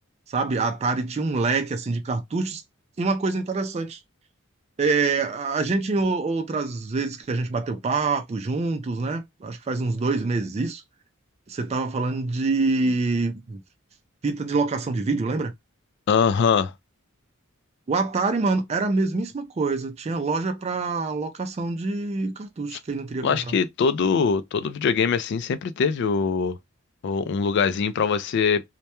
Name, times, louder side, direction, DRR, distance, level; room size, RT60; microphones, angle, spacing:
voice 1, 0.3-2.6 3.0-4.0 4.8-10.8 11.5-13.6 14.2-15.5 17.9-23.5, right 3 dB, 30° right, 0.3 m, -25 dB
voice 2, 16.1-16.7 22.7-22.8 23.2-26.5 27.0-28.6, left 6 dB, 55° left, 0.3 m, -22 dB
2.2 x 2.1 x 2.8 m
head